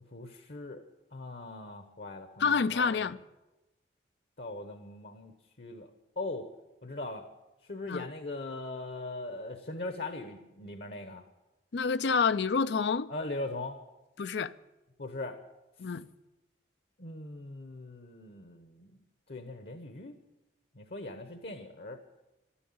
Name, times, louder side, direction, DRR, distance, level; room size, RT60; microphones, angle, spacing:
voice 1, 0.1-0.8 1.1-3.1 4.4-5.3 5.6-5.9 6.2-6.5 6.8-7.3 7.7-11.2 13.1-13.8 15.0-15.4 17.0-19.0 19.3-20.2 20.7-22.2, left 2 dB, 60° left, 1.0 m, -40 dB
voice 2, 2.4-3.2 7.9-8.1 11.7-13.1 14.2-14.5 15.8-16.1, left 5 dB, 80° left, 0.5 m, -28 dB
12.5 x 11.5 x 8.7 m
head